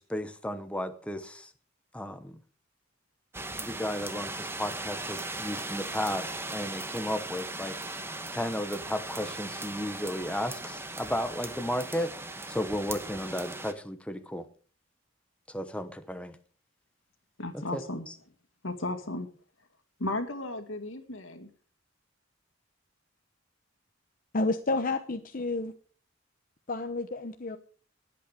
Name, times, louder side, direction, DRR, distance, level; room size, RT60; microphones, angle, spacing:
voice 1, 0.0-1.5 1.9-2.4 3.6-7.8 8.3-12.1 12.5-14.5 15.5-16.4 17.5-17.8, left 1 dB, 5° left, 0.9 m, -34 dB
sound 1, 3.3-13.7, right 2 dB, 10° right, 1.3 m, -38 dB
voice 2, 17.4-18.1 18.6-19.3 20.0-21.5, left 2 dB, 80° left, 2.2 m, -34 dB
voice 3, 24.3-25.7 26.7-27.6, left 2 dB, 45° left, 0.9 m, -30 dB
19.5 x 8.6 x 5.1 m
head